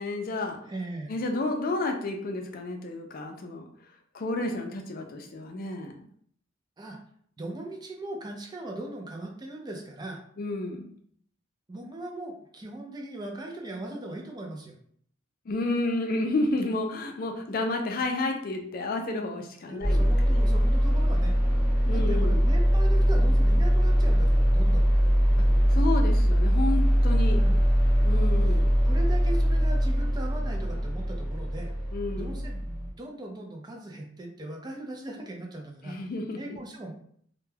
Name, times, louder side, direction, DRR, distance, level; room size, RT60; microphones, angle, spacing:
voice 1, 0.0-0.6 1.1-3.7 4.1-5.9 10.4-10.9 15.5-20.6 21.9-22.4 25.7-27.4 28.0-28.7 31.9-32.4 35.8-36.6, left 2 dB, 50° left, 4 dB, 0.4 m, -31 dB
voice 2, 0.6-1.1 6.8-7.0 7.4-10.2 11.7-14.7 19.7-21.3 21.9-24.8 27.3-27.6 28.4-31.7 32.2-36.0 36.3-36.9, right 2 dB, 20° right, 1 dB, 0.4 m, -39 dB
sound 1, 19.8-32.9, equal, 10° left, 1.0 m, -22 dB
2.2 x 2.2 x 3.2 m, 0.62 s
head